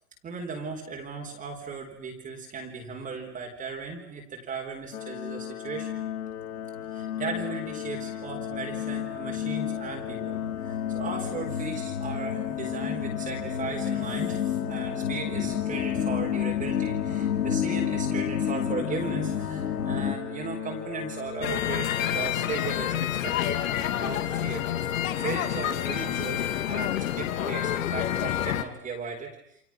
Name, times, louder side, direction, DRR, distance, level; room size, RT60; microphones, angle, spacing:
voice 1, 0.2-6.0 6.9-23.6 24.0-24.6 25.2-29.3, right 4 dB, 15° right, 1 dB, 4.2 m, -36 dB
sound 1, 4.9-22.8, left 10 dB, 70° left, 2.7 m, -35 dB
sound 2, 6.4-20.1, left 8 dB, 90° left, 3.7 m, -31 dB
sound 3, 21.4-28.6, left 11 dB, 55° left, 2.3 m, -28 dB
29.5 x 26.5 x 6.1 m, 0.72 s
hypercardioid pair, 135°, 47 cm